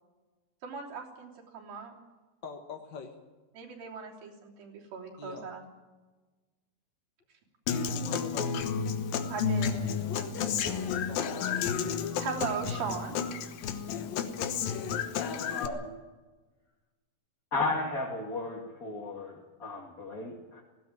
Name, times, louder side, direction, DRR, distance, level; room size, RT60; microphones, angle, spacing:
voice 1, 0.6-1.9 3.5-5.6 9.3-11.0 12.2-13.2, right 5 dB, 75° right, -2 dB, 5.0 m, -39 dB
voice 2, 2.4-3.1 5.2-5.5 8.0-8.5 11.1-11.7, left 5 dB, 50° left, 3 dB, 1.4 m, -44 dB
Human voice / Acoustic guitar, 7.7-15.7, left 6 dB, 75° left, 2.9 m, -31 dB
voice 3, 15.1-15.9 17.5-20.6, left 3 dB, 25° left, -3 dB, 2.3 m, -35 dB
18.5 x 16.0 x 9.0 m, 1.2 s
omnidirectional pair, 4.2 m